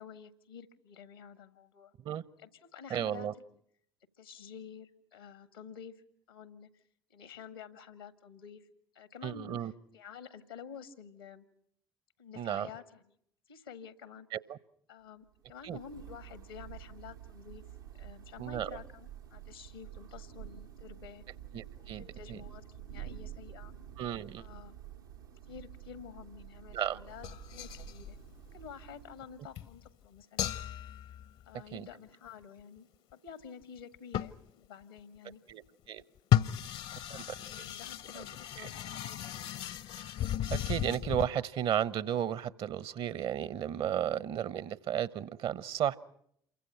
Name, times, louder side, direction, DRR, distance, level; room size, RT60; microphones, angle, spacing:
voice 1, 0.0-1.9 2.4-3.3 4.2-6.8 7.1-8.7 8.9-11.4 12.2-13.2 13.5-14.3 14.9-17.6 17.9-21.2 21.8-23.7 24.4-24.8 25.5-27.3 27.5-28.2 28.5-30.6 31.5-35.4 37.4-39.5, left 7 dB, 80° left, 12 dB, 1.8 m, -50 dB
voice 2, 2.9-3.3 9.2-9.7 12.4-12.7 14.3-14.6 15.6-15.8 18.4-18.8 21.5-22.4 24.0-24.4 26.7-27.0 31.7-31.9 35.5-35.6 35.9-36.0 37.1-37.7 38.2-38.3 38.6-38.7 40.5-46.0, right 10 dB, 50° right, 19 dB, 1.0 m, -34 dB
Thunder / Rain, 15.3-29.6, right 11 dB, 80° right, 1.3 m, -49 dB
sound 1, 27.1-28.7 29.2-29.3 29.5-29.9 30.4-31.7 33.8-33.9 34.1-34.5 36.2-41.3, left 11 dB, 60° left, 1.0 m, -34 dB
28.5 x 24.0 x 5.8 m, 0.69 s
figure-of-eight pair, 50°, 12 cm